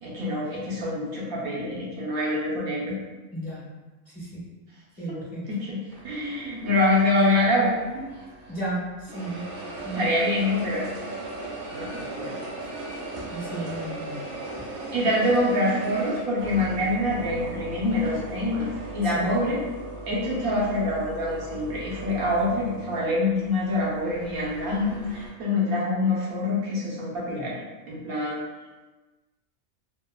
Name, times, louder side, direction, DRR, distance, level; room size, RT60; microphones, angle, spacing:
voice 1, 0.0-3.0 5.1-5.2 5.5-8.0 9.9-10.8 11.7-12.3 14.9-18.7 18.9-19.6 20.1-27.5 27.9-28.4, left 1 dB, 85° right, -6 dB, 1.3 m, -25 dB
voice 2, 3.3-3.6 4.1-4.4 5.0-5.5 8.5-9.4 9.8-10.1 13.3-14.2 19.1-19.3, right 2 dB, 40° left, -8 dB, 0.7 m, -33 dB
sound 1, 5.9-8.7 9.1-25.3, right 2 dB, 65° right, 0.8 m, -38 dB
3.2 x 2.1 x 2.3 m, 1.2 s
omnidirectional pair, 1.5 m